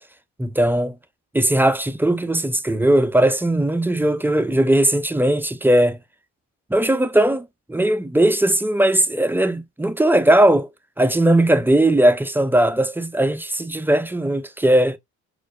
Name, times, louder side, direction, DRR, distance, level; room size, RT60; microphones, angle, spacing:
voice 1, 0.4-1.0 1.3-6.0 6.7-10.7 11.0-15.0, right 1 dB, 5° right, 0.3 m, -18 dB
4.3 x 2.4 x 2.3 m
cardioid pair, 90°, 30 cm